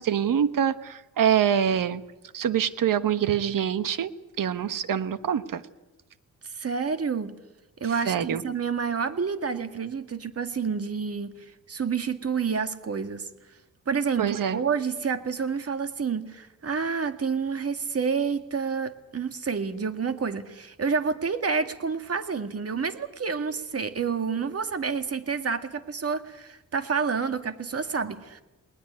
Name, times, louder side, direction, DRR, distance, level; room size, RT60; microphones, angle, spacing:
voice 1, 0.0-2.0 2.3-5.6 8.1-8.4 14.2-14.6, right 9 dB, 70° right, 13 dB, 1.3 m, -25 dB
voice 2, 6.5-7.4 7.8-13.3 13.9-28.4, right 5 dB, 45° right, 9 dB, 2.0 m, -29 dB
20.0 x 19.5 x 9.6 m, 0.96 s
cardioid pair, 85°, 34 cm